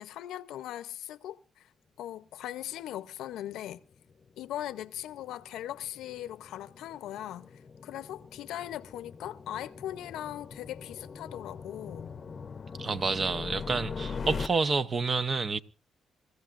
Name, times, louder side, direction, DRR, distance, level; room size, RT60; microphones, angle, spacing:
voice 1, 0.0-1.7 2.0-3.8 4.4-12.1 14.1-14.2, left 12 dB, 85° left, 0.7 m, -39 dB
sound 1, 3.3-14.5, left 5 dB, 40° left, 0.8 m, -42 dB
voice 2, 12.8-15.6, right 4 dB, 40° right, 0.8 m, -29 dB
26.5 x 15.0 x 2.5 m
cardioid pair, 90°, 0 cm